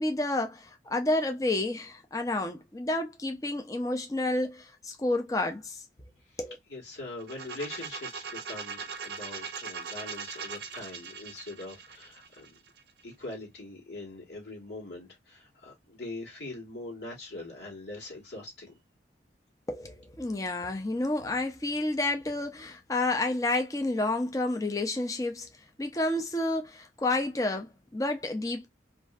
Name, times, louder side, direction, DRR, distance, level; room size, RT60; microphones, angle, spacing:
voice 1, 0.0-5.8 6.4-6.6 19.7-25.5 25.8-28.7, left 2 dB, 20° left, 0.5 m, -30 dB
voice 2, 6.7-12.6 13.0-18.8, left 2 dB, 70° left, 1.4 m, -42 dB
sound 1, 7.2-13.0, right 6 dB, 60° right, 0.6 m, -40 dB
3.0 x 2.5 x 2.3 m
head